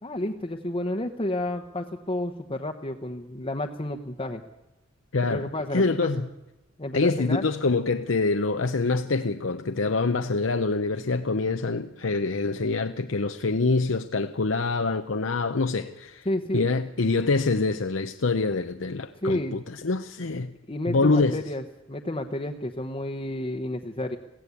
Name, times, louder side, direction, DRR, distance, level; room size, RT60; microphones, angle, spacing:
voice 1, 0.0-4.4 5.3-6.3 6.8-7.4 16.2-16.7 19.2-19.5 20.7-21.6 21.9-24.2, left 1 dB, 25° left, 1.1 m, -30 dB
voice 2, 5.1-5.4 5.7-6.2 6.9-16.3 16.5-20.5 20.9-21.4, left 3 dB, 70° left, 0.8 m, -25 dB
22.0 x 16.5 x 8.5 m
head